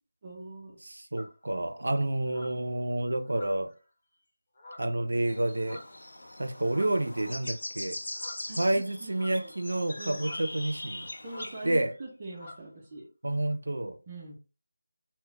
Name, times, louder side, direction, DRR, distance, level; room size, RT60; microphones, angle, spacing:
voice 1, 0.2-0.8 8.5-9.5 10.0-10.3 11.2-13.1 14.1-14.4, right 2 dB, 20° right, 0.5 m, -43 dB
voice 2, 0.8-3.7 4.8-5.8 6.4-8.0 8.6-11.1 11.6-11.9 13.2-14.0, right 1 dB, 80° right, 0.4 m, -29 dB
sound 1, 1.2-1.4 2.3-2.6 3.3-3.8 4.6-5.0 5.6-6.0 6.6-7.1 8.1-8.5 9.1-9.7 10.2-10.5 11.2-11.6 11.9-12.1 12.3-12.7, left 2 dB, 35° left, 0.7 m, -48 dB
sound 2, 5.3-11.8, left 1 dB, 75° left, 0.6 m, -41 dB
2.2 x 2.0 x 3.8 m
figure-of-eight pair, 175°, 0 cm